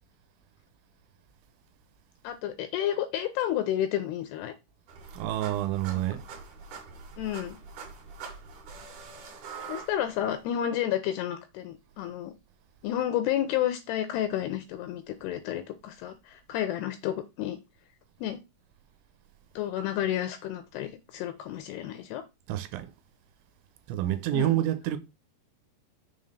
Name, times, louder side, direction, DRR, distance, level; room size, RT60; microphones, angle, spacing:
voice 1, 2.2-4.5 7.2-7.6 9.7-12.3 12.8-17.6 18.2-18.4 19.6-22.2 24.3-24.6, left 11 dB, 80° left, 2.4 m, -31 dB
sound 1, 4.9-10.4, right 5 dB, 55° right, 2.6 m, -44 dB
voice 2, 5.1-6.2 22.5-22.9 23.9-25.0, right 13 dB, 85° right, 3.1 m, -28 dB
6.9 x 3.8 x 6.4 m
omnidirectional pair, 5.3 m